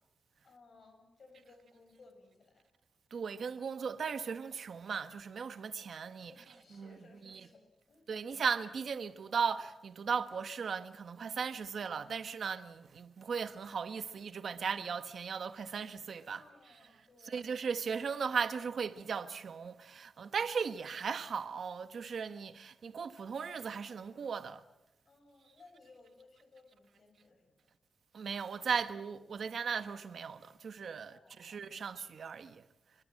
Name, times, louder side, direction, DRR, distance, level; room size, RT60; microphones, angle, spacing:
voice 1, 0.4-2.6 6.2-8.4 16.3-17.5 25.0-27.6 31.0-31.5, left 3 dB, 45° left, 8.0 m, -61 dB
voice 2, 3.1-6.3 6.8-6.9 8.1-16.4 17.3-24.6 28.1-32.6, right 6 dB, 60° right, 1.1 m, -37 dB
26.0 x 23.5 x 7.6 m
wide cardioid pair, 170°, 0 cm